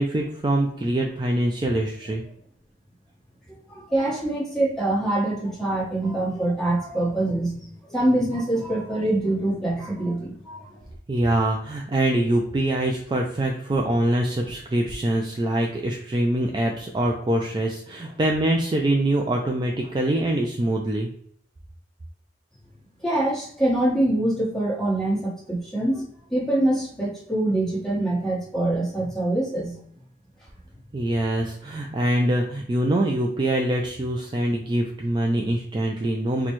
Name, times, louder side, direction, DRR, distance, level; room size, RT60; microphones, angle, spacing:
voice 1, 0.0-2.2 11.1-21.1 30.9-36.5, right 1 dB, 25° right, 1 dB, 0.3 m, -24 dB
voice 2, 3.5-7.5 7.9-10.7 23.0-29.8, right 1 dB, 5° left, -6 dB, 1.3 m, -24 dB
4.1 x 2.2 x 2.9 m, 0.64 s
head